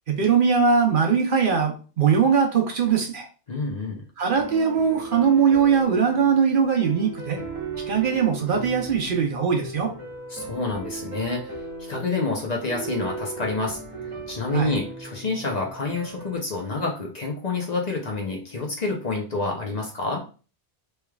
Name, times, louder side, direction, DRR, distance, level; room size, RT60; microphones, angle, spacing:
voice 1, 0.1-3.3 4.2-7.4 7.9-9.9 14.5-14.7, right 6 dB, 60° right, 2 dB, 0.8 m, -21 dB
voice 2, 3.5-4.0 10.3-20.2, left 3 dB, 45° left, 0 dB, 0.8 m, -28 dB
sound 1, 4.4-16.4, right 3 dB, 35° right, 1.0 m, -37 dB
3.3 x 3.1 x 2.3 m, 0.36 s
omnidirectional pair, 1.1 m